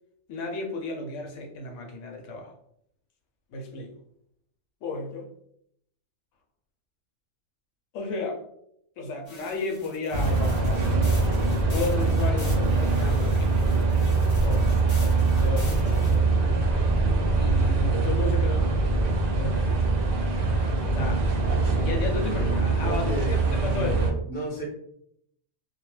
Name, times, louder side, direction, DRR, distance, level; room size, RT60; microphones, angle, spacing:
voice 1, 0.3-2.5 3.5-3.9 4.8-5.3 7.9-8.4 9.0-11.3 11.7-13.7 14.4-16.2 17.3-18.9 19.4-19.8 20.4-21.3 21.7-24.0, left 2 dB, 75° left, 1 dB, 0.9 m, -33 dB
sound 1, 9.3-16.2, left 1 dB, 35° left, 0.8 m, -44 dB
sound 2, 10.1-24.1, right 3 dB, 60° right, 0.6 m, -23 dB
voice 2, 22.8-24.6, right 1 dB, 15° left, -3 dB, 0.3 m, -33 dB
2.2 x 2.2 x 3.0 m, 0.72 s
omnidirectional pair, 1.3 m